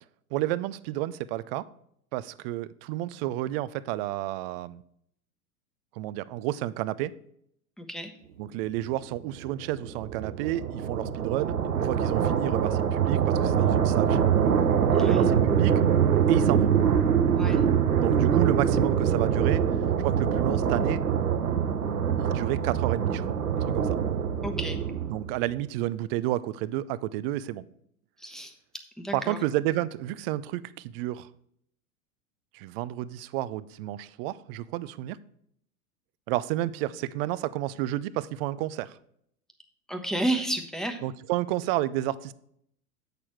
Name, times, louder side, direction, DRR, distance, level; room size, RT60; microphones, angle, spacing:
voice 1, 0.3-1.7 2.1-4.8 6.0-7.1 8.4-14.5 15.0-15.8 16.3-16.7 18.0-19.6 20.0-21.0 22.2-23.2 23.6-24.0 25.1-27.6 29.1-31.3 32.5-35.2 36.3-39.0 41.0-42.3, right 14 dB, 45° right, 16 dB, 0.6 m, -31 dB
voice 2, 7.8-8.1 14.9-15.3 17.4-17.6 24.4-24.8 28.2-28.5 29.0-29.4 39.9-41.0, right 1 dB, ahead, 4 dB, 1.2 m, -31 dB
sound 1, 9.1-25.4, right 8 dB, 90° right, 0.9 m, -24 dB
8.5 x 6.7 x 4.6 m, 0.68 s
hypercardioid pair, 100°, 44 cm